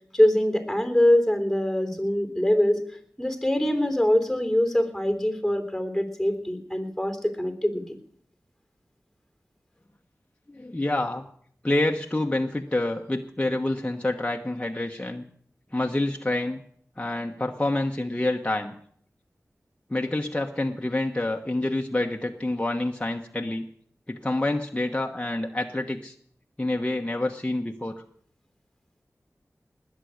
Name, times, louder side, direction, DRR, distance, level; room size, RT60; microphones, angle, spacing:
voice 1, 0.1-2.8 3.2-7.8, left 1 dB, ahead, 7 dB, 3.4 m, -23 dB
voice 2, 10.5-11.2 11.6-15.2 15.7-16.6 17.0-18.7 19.9-23.7 24.1-26.1 26.6-28.0, left 2 dB, 20° left, 2 dB, 1.1 m, -27 dB
19.5 x 8.4 x 6.4 m, 0.62 s
cardioid pair, 40°, 6 cm